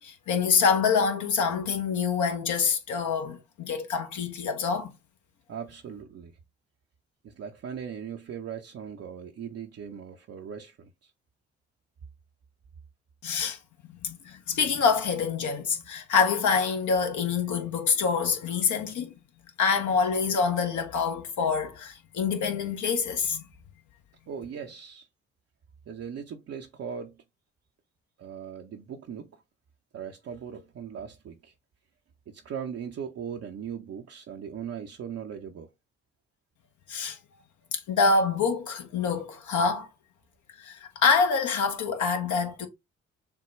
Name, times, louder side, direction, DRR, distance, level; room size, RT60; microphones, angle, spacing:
voice 1, 0.0-4.9 13.2-13.6 13.9-19.1 19.6-23.5 36.9-37.2 37.7-39.9 40.6-42.7, left 5 dB, 60° left, 1.2 m, -26 dB
voice 2, 5.5-6.3 7.2-11.1 24.3-25.1 25.9-27.2 28.2-29.4 29.9-31.5 32.3-35.7, right 7 dB, 45° right, 0.7 m, -39 dB
6.8 x 2.3 x 3.0 m
hypercardioid pair, 45°, 34 cm